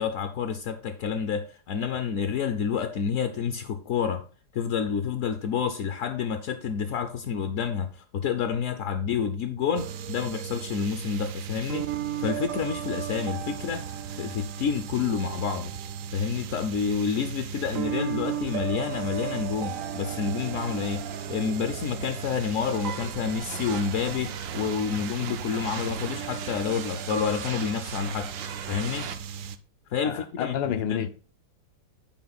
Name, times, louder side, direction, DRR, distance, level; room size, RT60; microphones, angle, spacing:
voice 1, 0.0-4.2 4.5-11.9 12.2-15.7 16.1-28.3 28.7-29.1 29.9-30.6 30.9-31.1, left 6 dB, 65° left, 0.8 m, -29 dB
sound 1, 9.8-29.6, right 9 dB, 65° right, 0.8 m, -36 dB
sound 2, 18.9-29.2, right 8 dB, 90° right, 1.5 m, -40 dB
voice 2, 30.0-31.1, left 9 dB, 85° left, 1.5 m, -29 dB
9.4 x 4.4 x 4.1 m
omnidirectional pair, 2.0 m